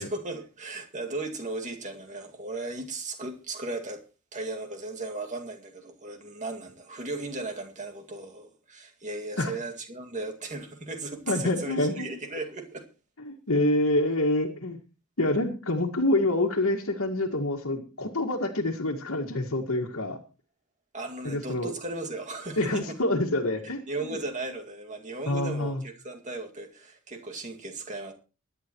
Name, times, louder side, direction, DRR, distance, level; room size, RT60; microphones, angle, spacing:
voice 1, 0.0-4.0 4.3-12.8 20.9-23.0 23.9-28.1, right 2 dB, 35° right, 2.2 m, -36 dB
voice 2, 11.3-12.1 13.2-14.8 15.2-20.2 21.2-21.7 22.6-24.2 25.3-25.8, left 1 dB, 65° left, 1.8 m, -27 dB
22.5 x 10.5 x 3.1 m
head